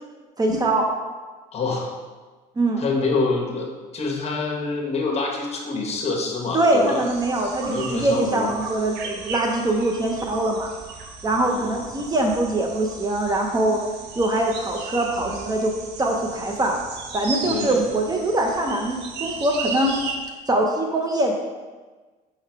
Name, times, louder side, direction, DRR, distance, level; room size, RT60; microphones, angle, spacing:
voice 1, 0.4-0.9 2.6-2.8 6.5-10.7 11.2-13.8 14.2-15.7 16.0-16.8 17.1-19.9 20.5-21.3, right 1 dB, 20° right, 1 dB, 0.7 m, -23 dB
voice 2, 1.5-1.9 2.8-7.0 7.7-8.5 11.4-11.8 17.4-17.8, left 3 dB, 35° left, -1 dB, 1.3 m, -26 dB
sound 1, 6.3-20.2, right 4 dB, 75° right, 0.8 m, -36 dB
5.7 x 3.9 x 4.6 m, 1.3 s
cardioid pair, 115°, 18 cm